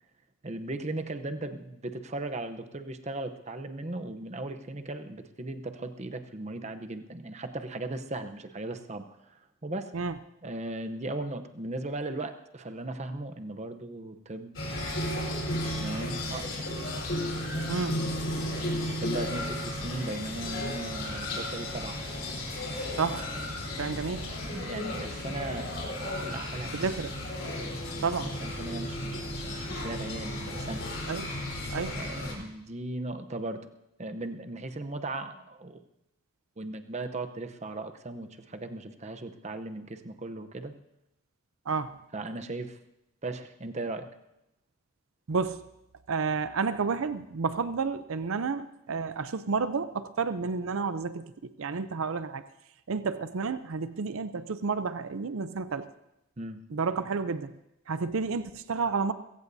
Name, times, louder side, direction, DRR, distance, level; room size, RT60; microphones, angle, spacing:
voice 1, 0.4-9.9 10.4-14.6 15.6-16.6 19.0-22.0 24.0-25.9 26.2-26.7 27.4-30.8 31.8-33.7 34.0-35.8 36.6-40.7 42.1-42.8 43.2-44.1 56.4-56.6, right 2 dB, 30° right, 8 dB, 0.7 m, -37 dB
sound 1, 14.5-32.3, left 1 dB, 60° left, 4.1 m, -34 dB
voice 2, 17.7-18.0 23.0-23.3 23.8-24.3 26.7-27.1 28.0-28.4 31.1-31.3 31.7-32.0 41.7-42.0 45.3-45.6 46.1-52.4 52.9-55.9 56.7-57.5 57.9-59.1, right 4 dB, 70° right, 12 dB, 0.5 m, -30 dB
21.5 x 16.5 x 2.7 m, 0.87 s
head